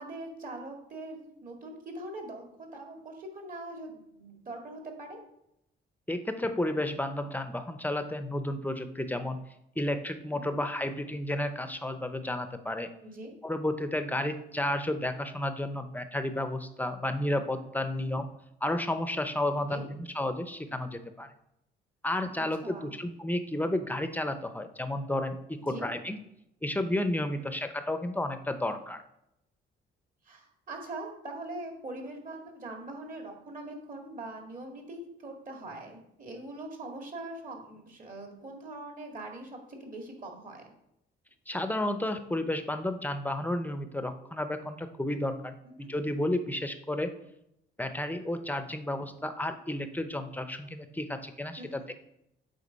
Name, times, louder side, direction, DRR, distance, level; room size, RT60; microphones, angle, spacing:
voice 1, 0.0-5.2 10.3-10.5 13.0-13.3 17.9-18.2 19.7-19.8 22.4-22.9 25.7-25.9 27.4-27.5 30.3-40.6 45.6-45.9 51.6-51.9, right 2 dB, 45° right, 2 dB, 2.0 m, -42 dB
voice 2, 6.1-9.4 9.8-12.9 13.4-18.3 18.6-21.3 22.0-26.2 26.6-29.0 41.5-47.1 47.8-51.8, left 1 dB, 10° left, 9 dB, 0.7 m, -32 dB
8.4 x 3.9 x 5.2 m, 0.81 s
cardioid pair, 90°, 20 cm